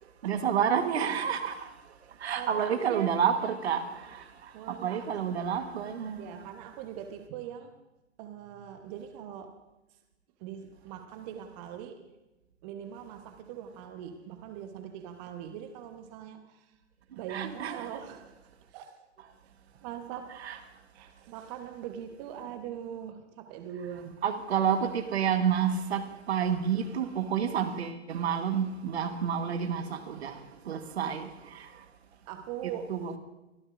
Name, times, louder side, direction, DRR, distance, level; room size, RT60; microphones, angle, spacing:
voice 1, 0.2-1.7 2.2-6.4 17.3-17.9 20.4-20.6 24.2-31.7 32.9-33.2, right 8 dB, 60° right, 1.5 m, -29 dB
voice 2, 2.3-3.1 4.5-5.3 6.1-7.7 8.2-9.6 10.4-12.1 12.6-16.7 17.2-18.3 18.7-19.0 19.8-20.4 20.9-24.2 32.3-32.9, right 9 dB, 35° right, 1.1 m, -41 dB
24.0 x 14.0 x 2.6 m
figure-of-eight pair, 110°, 36 cm